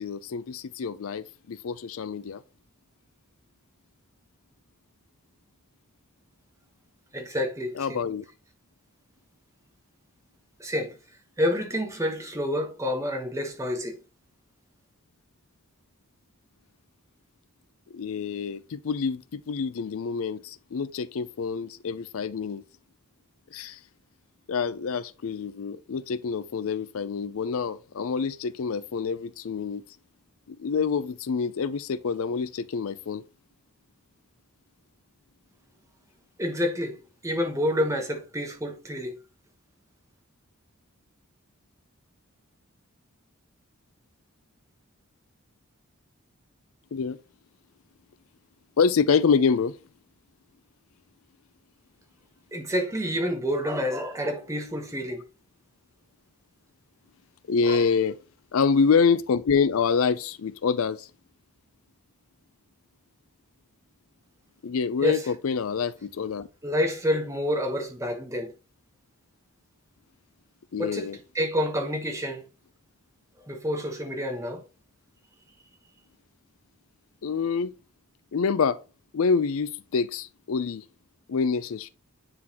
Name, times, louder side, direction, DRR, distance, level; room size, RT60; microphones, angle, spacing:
voice 1, 0.0-2.4 7.7-8.2 17.9-22.6 23.5-23.8 24.5-29.8 30.5-33.2 46.9-47.2 48.8-49.7 57.5-58.2 58.5-61.1 64.6-66.5 70.7-71.2 77.2-77.7 78.3-78.8 79.1-80.8 81.3-81.9, left 5 dB, 70° left, 0.4 m, -26 dB
voice 2, 7.1-8.0 10.6-10.9 11.4-14.0 36.4-37.0 37.2-39.2 52.5-55.2 57.6-57.8 65.0-65.2 66.6-68.5 70.8-71.1 71.3-72.4 73.5-74.6, equal, 15° right, 1.0 m, -28 dB
9.6 x 3.9 x 2.9 m
head